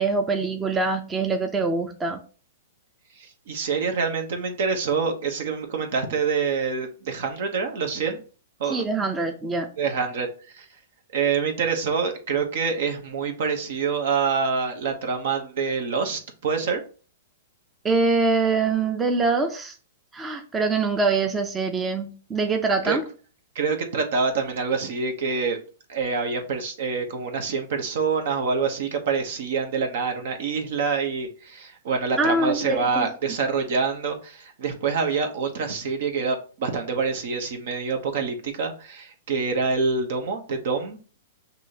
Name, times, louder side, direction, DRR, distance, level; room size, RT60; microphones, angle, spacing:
voice 1, 0.0-2.2 8.7-9.7 17.8-19.7 20.1-23.0 32.2-33.1, right 3 dB, 15° right, 0.6 m, -24 dB
voice 2, 3.2-8.2 8.6-8.8 9.8-10.3 10.5-10.7 11.1-16.8 22.8-23.0 23.5-25.6 25.9-41.0, right 5 dB, 65° right, 0.9 m, -26 dB
6.0 x 2.7 x 2.8 m
hypercardioid pair, 125°, 0 cm